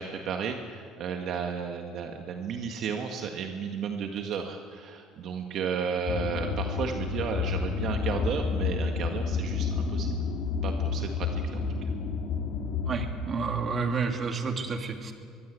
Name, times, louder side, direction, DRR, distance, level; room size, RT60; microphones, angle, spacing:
voice 1, 0.0-10.1 10.6-11.9, right 6 dB, 55° right, 3 dB, 1.8 m, -33 dB
sound 1, 6.1-13.1, left 5 dB, 55° left, 3.2 m, -30 dB
voice 2, 12.9-15.1, right 5 dB, 35° right, 4 dB, 2.7 m, -30 dB
23.5 x 22.0 x 8.4 m, 2.1 s
cardioid pair, 135°, 0 cm